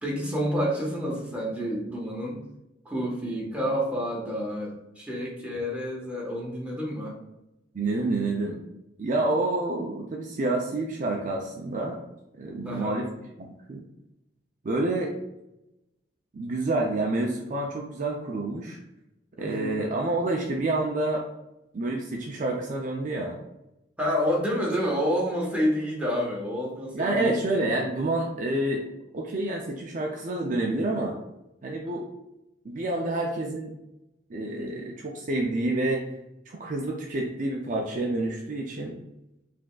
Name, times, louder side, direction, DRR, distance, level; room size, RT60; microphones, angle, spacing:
voice 1, 0.0-2.4 2.8-7.1 12.6-13.0 19.4-19.8 24.0-27.4 34.5-34.7, equal, 5° right, -4 dB, 1.3 m, -29 dB
voice 2, 7.7-8.6 9.0-12.0 12.4-13.1 13.4-13.8 14.6-15.1 16.3-18.8 19.4-21.2 21.7-23.3 26.9-28.8 29.1-31.1 31.6-32.1 32.6-33.7 34.3-36.0 36.5-39.0, right 2 dB, 45° right, 0 dB, 0.5 m, -28 dB
5.0 x 3.4 x 2.3 m, 0.90 s
head